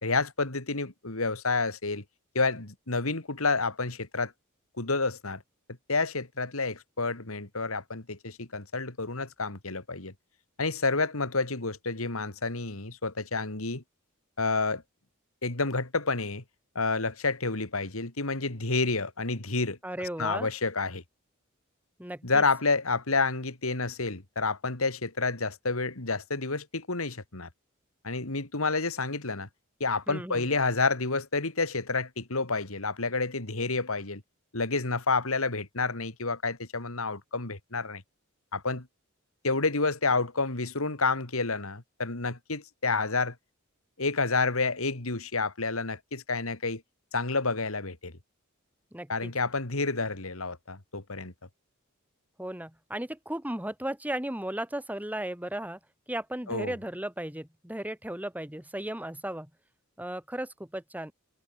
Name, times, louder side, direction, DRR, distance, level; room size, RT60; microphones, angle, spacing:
voice 1, 0.0-2.0 2.3-4.3 4.8-5.4 5.9-10.1 10.6-13.8 14.4-14.8 15.4-16.4 16.7-19.8 20.2-21.0 22.2-27.5 28.0-29.5 29.8-34.2 34.5-38.0 38.5-38.9 39.4-43.3 44.0-46.8 47.1-48.1 49.1-51.3 56.5-56.7, left 3 dB, 75° left, 2.8 m, -29 dB
voice 2, 19.8-20.5 22.0-22.4 30.1-30.4 48.9-49.3 52.4-55.8 56.1-59.5 60.0-61.1, right 1 dB, 10° right, 2.8 m, -35 dB
head